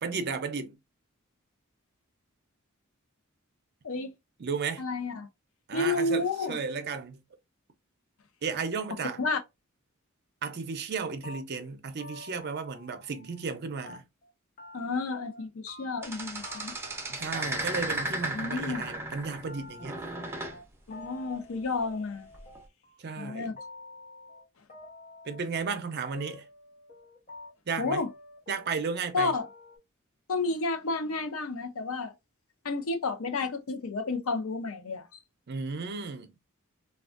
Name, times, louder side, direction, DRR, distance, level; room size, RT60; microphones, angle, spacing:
voice 1, 0.0-0.8 4.4-4.9 5.7-7.2 8.4-9.2 10.4-14.0 17.1-20.0 23.0-23.6 25.2-26.5 27.7-28.0 28.5-29.3 35.5-36.3, right 5 dB, 50° right, 0.5 m, -34 dB
voice 2, 4.8-5.3 5.7-6.6 9.2-9.4 14.7-16.7 18.3-18.8 20.9-22.3 23.2-23.5 27.8-28.1 29.1-29.5 30.3-32.1 32.6-35.0, left 3 dB, 70° left, 0.6 m, -31 dB
sound 1, 11.2-13.6 13.8-14.3 14.6-15.0 15.3-16.1 16.4-18.5 18.7-29.8, left 3 dB, 40° left, 0.8 m, -49 dB
sound 2, 16.0-19.5 19.8-20.6 22.3-22.6, right 1 dB, 10° right, 0.6 m, -35 dB
3.4 x 2.3 x 2.4 m
head